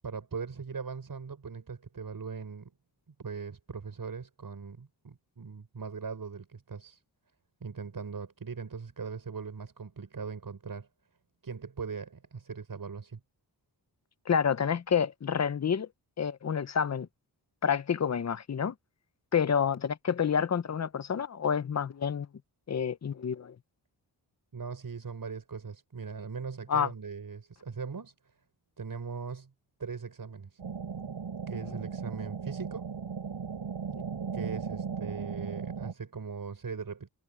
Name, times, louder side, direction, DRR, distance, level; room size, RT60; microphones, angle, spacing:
voice 1, 0.0-2.7 3.2-7.0 7.6-10.9 11.4-13.2 24.5-28.1 28.8-29.5 29.8-30.6 31.5-32.9 34.3-37.1, right 5 dB, 55° right, 6.2 m, -40 dB
voice 2, 14.3-15.9 16.2-17.1 17.6-18.7 19.3-22.3 22.7-23.6 26.7-26.9, left 7 dB, 40° left, 0.7 m, -28 dB
sound 1, 30.6-35.9, right 6 dB, 85° right, 3.4 m, -37 dB
wide cardioid pair, 140°, 42 cm